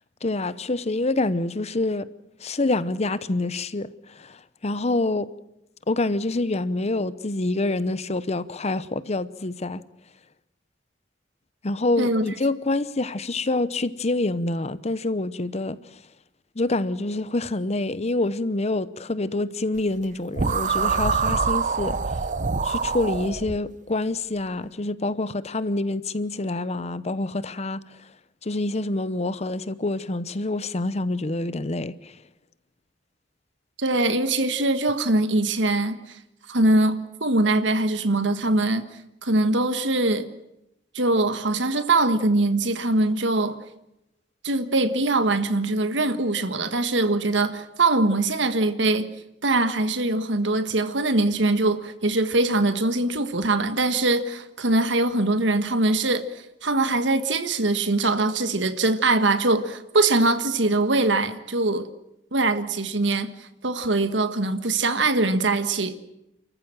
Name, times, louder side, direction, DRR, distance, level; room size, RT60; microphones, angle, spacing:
voice 1, 0.2-2.1 2.4-4.4 4.6-5.3 5.9-9.8 11.6-15.8 16.6-22.0 22.6-27.8 28.4-32.1, left 2 dB, 35° left, 0.9 m, -26 dB
sound 1, 20.4-23.6, right 5 dB, 45° right, 0.8 m, -25 dB
voice 2, 33.8-36.2 36.5-38.9 39.2-40.3 40.9-43.6 44.4-49.1 49.4-56.2 56.6-61.9 62.3-63.3 63.6-66.0, right 2 dB, 75° right, 1.6 m, -22 dB
29.5 x 14.5 x 7.6 m
head